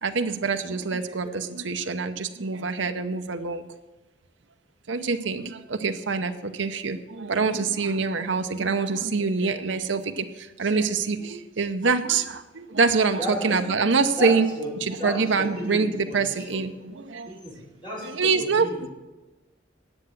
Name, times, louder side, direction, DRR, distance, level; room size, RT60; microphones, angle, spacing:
voice 1, 0.0-3.6 4.9-14.5 14.8-17.3 18.0-18.7, right 4 dB, 80° right, 7 dB, 0.8 m, -25 dB
voice 2, 13.2-13.6 14.2-14.7 15.0-16.6 17.2-18.9, equal, 25° left, -5 dB, 4.5 m, -33 dB
9.9 x 7.8 x 7.4 m, 1.1 s
head